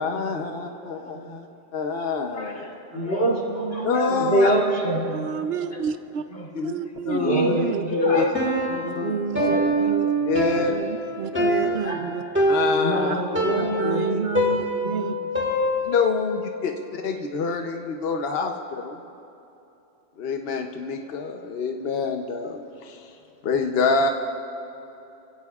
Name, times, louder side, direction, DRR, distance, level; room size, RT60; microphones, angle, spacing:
voice 1, 0.0-1.5 1.7-2.7 3.8-4.5 6.5-6.7 7.1-7.7 8.2-8.3 8.9-9.1 10.3-10.7 11.3-11.8 12.5-13.2 13.6-13.7 14.1-14.2 15.8-19.0 20.2-23.2 23.4-24.1, left 4 dB, 65° left, 3 dB, 1.0 m, -26 dB
voice 2, 0.7-1.4 2.3-5.8 6.3-6.5 7.1-8.8 9.3-10.7 11.3-11.4 11.8-14.8 15.1-15.3, equal, 85° left, -3 dB, 3.2 m, -27 dB
voice 3, 2.9-4.4 5.1-6.2 6.6-7.8 8.8-10.1 10.7-12.2 13.8-15.1, right 6 dB, 70° right, 9 dB, 0.9 m, -30 dB
Piano, 8.3-16.2, right 1 dB, 10° right, 1.8 m, -24 dB
30.0 x 16.0 x 2.4 m, 2.9 s
omnidirectional pair, 1.1 m